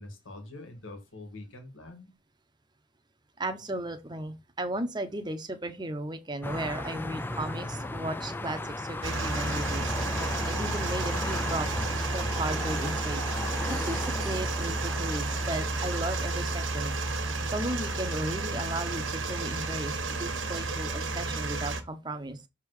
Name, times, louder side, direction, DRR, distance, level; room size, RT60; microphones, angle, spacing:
voice 1, 0.0-2.1, left 2 dB, 75° left, 1.8 m, -44 dB
voice 2, 3.4-9.9 10.4-13.2 13.7-16.9 17.5-22.4, right 1 dB, 20° right, 0.8 m, -35 dB
sound 1, 6.4-21.6, left 2 dB, 10° left, 0.3 m, -37 dB
sound 2, 9.0-21.8, right 3 dB, 75° right, 1.4 m, -31 dB
6.5 x 3.6 x 4.8 m
head